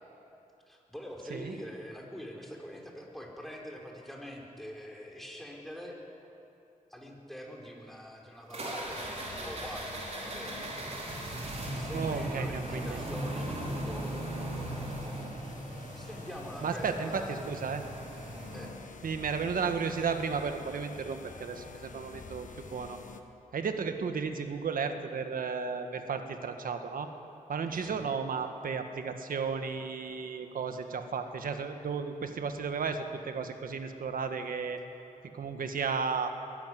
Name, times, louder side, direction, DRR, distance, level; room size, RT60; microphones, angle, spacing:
voice 1, 0.7-6.0 6.9-10.7 11.8-15.2 15.9-17.4 18.5-18.7 27.7-28.1, equal, ahead, -1 dB, 4.7 m, -44 dB
sound 1, 8.5-18.7, right 1 dB, 45° right, 4.6 m, -38 dB
sound 2, 8.8-23.2, left 5 dB, 60° left, 1.5 m, -49 dB
voice 2, 11.9-13.0 16.6-17.8 19.0-23.0 23.5-27.1 27.5-34.8 35.3-36.3, right 5 dB, 75° right, 7 dB, 1.6 m, -34 dB
22.0 x 14.0 x 9.5 m, 2.8 s
cardioid pair, 70°, 15 cm